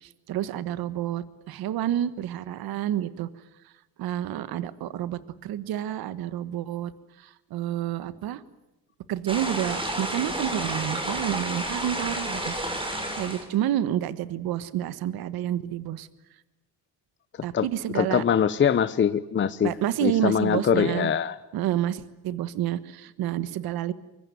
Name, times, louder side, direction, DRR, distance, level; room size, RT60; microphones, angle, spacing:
voice 1, 0.0-3.3 4.0-6.9 7.2-8.4 9.1-12.5 13.2-16.1 17.4-18.2 19.6-21.1 21.5-23.9, right 12 dB, 70° right, 15 dB, 1.5 m, -29 dB
sound 1, 9.3-13.5, right 1 dB, 15° right, 5.0 m, -31 dB
voice 2, 17.9-19.7 20.0-21.4, left 8 dB, 30° left, 13 dB, 0.9 m, -23 dB
24.5 x 22.5 x 9.2 m, 0.93 s
cardioid pair, 120°, 38 cm